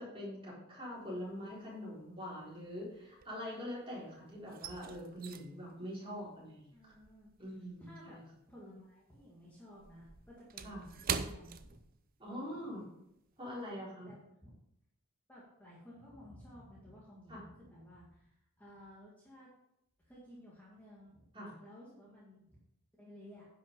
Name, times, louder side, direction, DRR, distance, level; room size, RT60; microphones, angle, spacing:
voice 1, 0.0-6.9 7.4-8.2 10.6-10.8 12.2-12.8 13.4-14.1 17.3-17.4 21.3-21.5, equal, 25° right, -6 dB, 4.0 m, -44 dB
sound 1, 1.1-1.6 1.9-3.9 4.1-8.8 9.1-12.4 12.7-12.9 13.4-13.7, right 6 dB, 40° right, 0.6 m, -44 dB
voice 2, 6.7-7.3 7.8-8.2 8.5-11.8 12.3-12.6 14.0-14.6 15.3-19.5 20.0-21.3 21.6-22.6 23.0-23.5, equal, 10° left, -6 dB, 1.9 m, -55 dB
10.5 x 5.9 x 5.2 m, 0.82 s
head